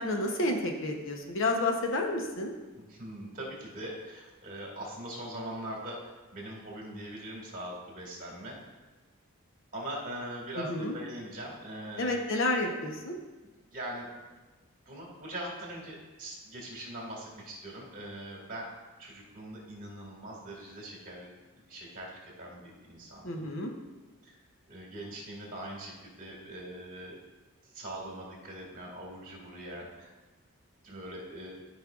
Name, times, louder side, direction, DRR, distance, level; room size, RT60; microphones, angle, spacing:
voice 1, 0.0-2.5 10.6-11.0 12.0-13.2 23.2-23.7, left 2 dB, 60° left, 2 dB, 0.9 m, -30 dB
voice 2, 2.9-6.0 6.3-8.7 9.7-12.2 13.7-14.1 14.9-18.7 19.0-21.3 21.7-23.5 24.2-24.4 24.7-27.2 27.7-30.1 30.8-31.5, right 1 dB, 35° right, -2 dB, 2.2 m, -41 dB
13.0 x 5.3 x 2.4 m, 1.2 s
head